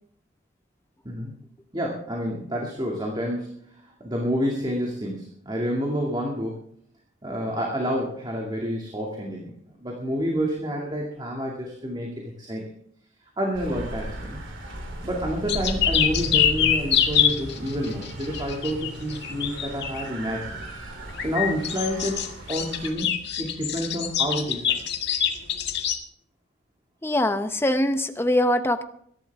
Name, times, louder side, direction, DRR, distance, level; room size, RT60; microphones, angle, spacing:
voice 1, 1.7-3.6 4.0-6.5 7.2-9.5 9.8-12.6 13.4-14.4 15.0-20.6 21.2-22.2 22.5-24.8, equal, 20° right, -1 dB, 2.3 m, -29 dB
sound 1, 13.5-22.9, right 1 dB, 65° right, 3.2 m, -36 dB
sound 2, 15.5-20.1 21.1-26.0, left 9 dB, 55° left, 1.9 m, -25 dB
voice 2, 27.0-28.8, left 1 dB, 10° left, 8 dB, 0.8 m, -22 dB
22.0 x 11.5 x 3.6 m, 0.68 s
head